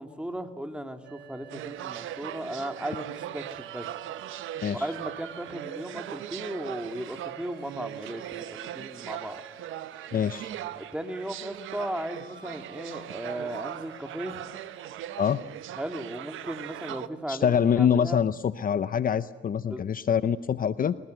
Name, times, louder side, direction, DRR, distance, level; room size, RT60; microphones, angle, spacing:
voice 1, 0.0-3.9 4.7-9.4 10.8-14.4 15.8-18.2 19.7-19.8, right 1 dB, 5° right, 6 dB, 2.4 m, -36 dB
sound 1, 1.0-15.0, right 7 dB, 65° right, 3.6 m, -50 dB
sound 2, 1.5-17.1, right 12 dB, 85° right, 1.0 m, -40 dB
voice 2, 10.1-10.5 15.2-15.4 17.3-21.0, left 8 dB, 45° left, 14 dB, 0.7 m, -25 dB
24.5 x 19.5 x 8.0 m, 1.2 s
cardioid pair, 90°, 20 cm